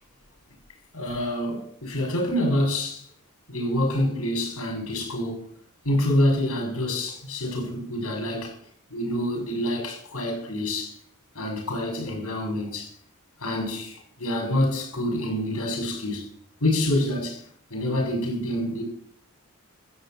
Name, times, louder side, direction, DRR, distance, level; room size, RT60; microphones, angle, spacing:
voice 1, 0.9-3.0 3.5-5.5 5.8-8.5 8.9-10.9 11.3-12.9 13.4-16.3 16.6-17.4 17.7-18.8, left 1 dB, 80° left, 6.7 m, -27 dB
14.0 x 7.8 x 9.2 m
head